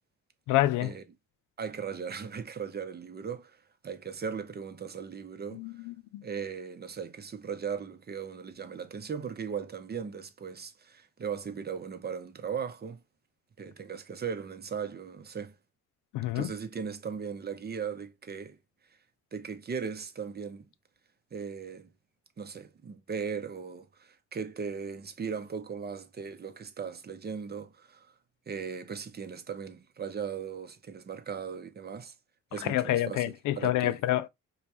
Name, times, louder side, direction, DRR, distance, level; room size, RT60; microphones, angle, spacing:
voice 1, 0.5-0.9 5.5-6.2 16.1-16.5 32.6-34.3, left 14 dB, 85° left, 0.5 m, -28 dB
voice 2, 1.6-5.6 6.2-13.0 13.6-15.6 16.3-18.6 19.3-20.6 21.3-21.9 22.4-28.1 28.5-32.1 32.5-34.0, right 6 dB, 35° right, 0.7 m, -38 dB
5.1 x 2.3 x 2.9 m
cardioid pair, 90°, 30 cm